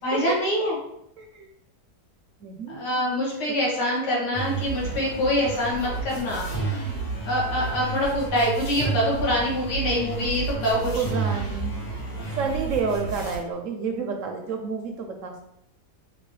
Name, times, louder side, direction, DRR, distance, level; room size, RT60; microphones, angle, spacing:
voice 1, 0.0-0.8 2.7-6.5 7.3-11.0, left 1 dB, 80° left, -5 dB, 1.9 m, -25 dB
voice 2, 1.2-1.5 2.4-2.8 4.0-4.1 10.9-11.8 12.4-15.3, right 5 dB, 70° right, 3 dB, 0.8 m, -29 dB
sound 1, 4.3-13.4, right 4 dB, 60° left, 1.7 m, -31 dB
6.0 x 2.7 x 3.2 m, 0.77 s
omnidirectional pair, 1.8 m